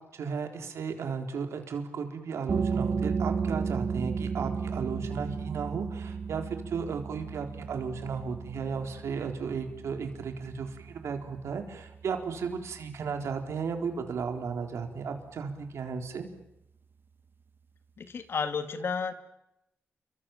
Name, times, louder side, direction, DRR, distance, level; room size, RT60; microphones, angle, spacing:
voice 1, 0.1-16.3, right 5 dB, 85° right, 5 dB, 3.8 m, -34 dB
sound 1, 2.5-13.9, right 5 dB, 50° right, 1.0 m, -34 dB
voice 2, 18.0-19.1, left 5 dB, 60° left, 9 dB, 2.4 m, -32 dB
29.5 x 23.5 x 7.3 m, 0.81 s
wide cardioid pair, 105°, 5 cm